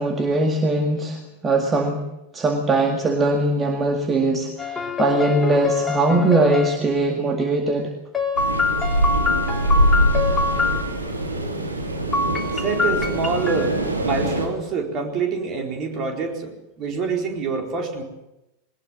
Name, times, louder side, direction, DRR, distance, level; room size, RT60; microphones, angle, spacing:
voice 1, 0.0-2.1 2.3-7.9, right 2 dB, 20° right, 4 dB, 2.0 m, -21 dB
sound 1, 4.6-6.8 8.1-10.8 12.1-13.7, left 4 dB, 15° left, 2.8 m, -24 dB
sound 2, 8.4-14.5, equal, 80° right, 3.4 m, -23 dB
voice 2, 12.5-18.0, right 4 dB, 35° right, 2 dB, 4.2 m, -26 dB
21.0 x 19.5 x 7.4 m, 0.93 s
figure-of-eight pair, 90°, 0 cm